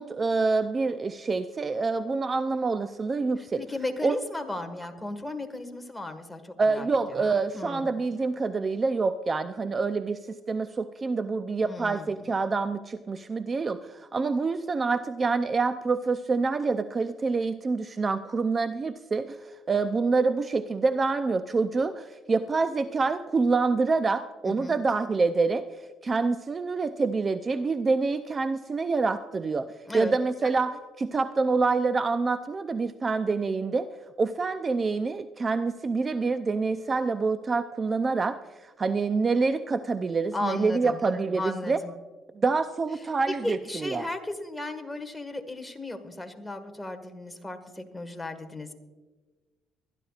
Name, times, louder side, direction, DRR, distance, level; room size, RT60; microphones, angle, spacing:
voice 1, 0.0-3.6 4.0-4.2 6.6-25.7 26.0-29.7 29.9-33.9 34.2-41.8 42.3-44.1, right 4 dB, 30° right, 11 dB, 0.5 m, -26 dB
voice 2, 3.4-7.9 11.6-12.1 24.5-24.8 29.9-30.2 40.3-41.0 41.4-41.9 43.4-48.7, left 2 dB, 10° left, 6 dB, 1.7 m, -35 dB
23.0 x 11.5 x 2.4 m, 1.3 s
cardioid pair, 90°, 0 cm